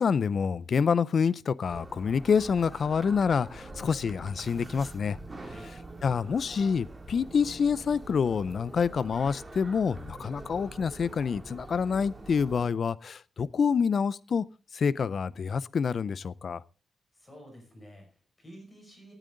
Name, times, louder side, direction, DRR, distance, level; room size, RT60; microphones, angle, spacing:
voice 1, 0.0-5.2 6.0-14.5 14.7-16.6, left 6 dB, 50° left, 0.5 m, -27 dB
sound 1, 1.7-12.7, right 2 dB, 20° right, 2.1 m, -45 dB
voice 2, 17.1-19.1, equal, 20° left, 5.5 m, -50 dB
18.0 x 9.0 x 3.9 m
wide cardioid pair, 145°, 0 cm